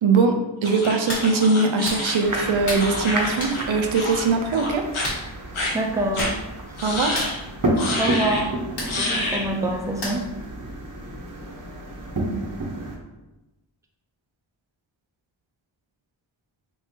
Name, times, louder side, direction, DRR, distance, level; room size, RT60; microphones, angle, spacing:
voice 1, 0.0-4.9 6.8-7.2, right 4 dB, 75° right, 4 dB, 0.6 m, -21 dB
sound 1, 0.6-3.7 3.9-4.3 4.5-5.1 5.5-5.7 6.1-6.3 6.8-7.4 7.8-8.4 8.9-9.5, left 2 dB, 85° left, 0.8 m, -29 dB
Hands, 1.1-1.3 1.8-2.0 2.7-2.9 3.4-3.6 5.0-5.2 5.9-6.0 6.2-6.4 6.6-6.8 7.1-7.3 8.8-8.9 10.0-10.4 10.8-10.9, left 1 dB, 60° left, 1.1 m, -30 dB
sound 2, 2.2-13.0, right 1 dB, 45° right, 0.7 m, -31 dB
voice 2, 5.7-6.4 8.0-8.5 9.0-10.2, right 1 dB, 5° right, 1 dB, 0.4 m, -25 dB
3.6 x 3.1 x 2.8 m, 1.0 s
wide cardioid pair, 60°, 48 cm